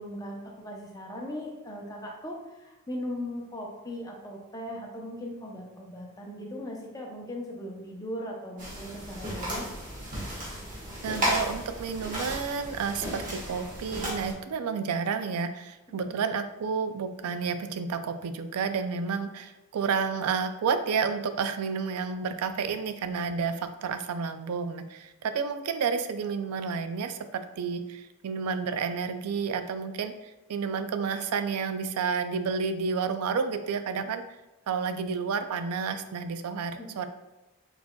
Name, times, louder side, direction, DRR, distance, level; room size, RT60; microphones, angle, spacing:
voice 1, 0.0-9.7 36.8-37.1, equal, 15° left, -1 dB, 0.6 m, -38 dB
sound 1, 8.6-14.3, equal, 35° right, 1.3 m, -34 dB
voice 2, 11.0-34.2 34.7-37.1, right 5 dB, 85° right, 9 dB, 0.4 m, -30 dB
4.4 x 4.1 x 2.3 m, 0.99 s
head